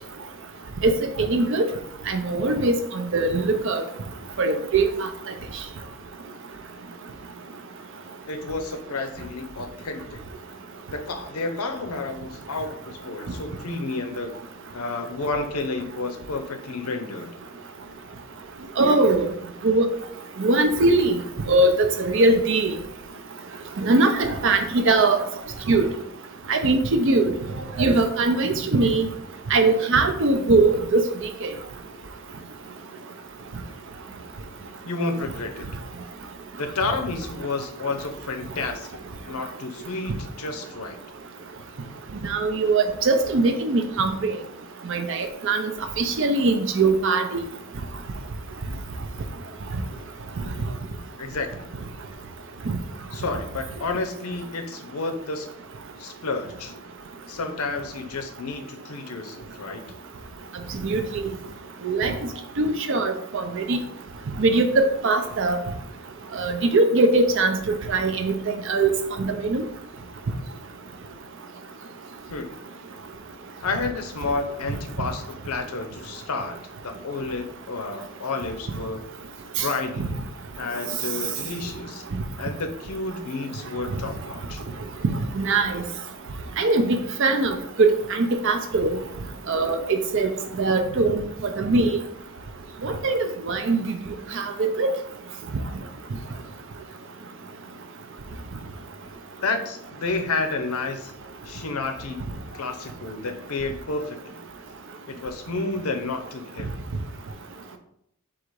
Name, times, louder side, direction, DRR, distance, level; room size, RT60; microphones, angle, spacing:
voice 1, 1.2-1.6 2.1-3.8 4.4-4.9 18.8-19.3 19.6-19.9 20.4-21.2 21.5-22.7 23.8-25.2 25.7-25.9 26.5-27.3 27.8-29.1 29.5-31.0 31.4-31.5 42.2-44.3 44.9-45.6 46.0-47.4 52.7-52.8 60.8-61.3 61.8-62.1 62.6-63.8 64.4-65.6 66.4-67.6 67.9-68.9 69.2-69.6 85.4-85.8 86.6-88.9 89.5-90.3 90.6-91.2 91.6-91.9 92.8-93.9 94.3-94.9, right 3 dB, 55° right, 7 dB, 0.5 m, -21 dB
voice 2, 8.3-10.2 10.9-14.3 14.7-17.3 34.8-35.7 36.6-41.0 51.2-51.7 53.1-55.5 56.0-56.7 57.3-59.8 72.3-72.5 73.6-76.6 76.8-79.0 79.6-80.1 80.6-82.0 82.4-84.6 99.4-101.1 101.4-102.2 102.5-104.4 105.1-106.7, left 3 dB, 80° left, 6 dB, 0.6 m, -30 dB
4.0 x 2.4 x 4.6 m, 0.72 s
head